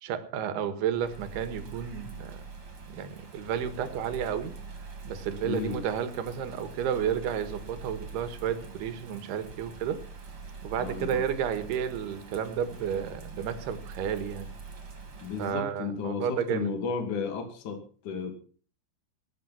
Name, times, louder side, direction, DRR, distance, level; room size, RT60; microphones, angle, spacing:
voice 1, 0.0-2.4 2.9-4.6 5.0-10.0 10.6-14.5 15.4-16.7, right 8 dB, 75° right, 3.4 m, -32 dB
Bird vocalization bird call bird song / Rain, 0.9-15.5, right 4 dB, 35° right, 3.4 m, -44 dB
voice 2, 5.4-5.8 10.8-11.2 15.2-18.4, left 5 dB, 50° left, 3.7 m, -33 dB
20.0 x 9.2 x 5.9 m
omnidirectional pair, 4.8 m